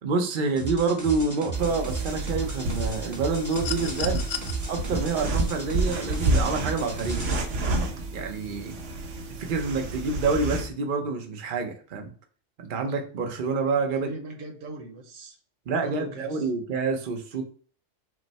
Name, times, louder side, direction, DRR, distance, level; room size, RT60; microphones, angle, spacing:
voice 1, 0.0-4.2 4.7-7.2 8.1-8.8 9.4-12.1 12.6-14.1 15.7-17.4, right 4 dB, 45° right, 4 dB, 0.8 m, -27 dB
sound 1, 0.6-7.4, right 4 dB, 15° right, 0.9 m, -35 dB
sound 2, 1.5-10.7, right 2 dB, 75° right, 1.1 m, -30 dB
sound 3, 3.5-4.5 6.0-6.2, left 9 dB, 60° left, 0.6 m, -34 dB
voice 2, 13.9-15.4 15.8-16.4, right 2 dB, 90° right, 4 dB, 1.3 m, -39 dB
6.1 x 2.1 x 4.1 m, 0.42 s
omnidirectional pair, 1.3 m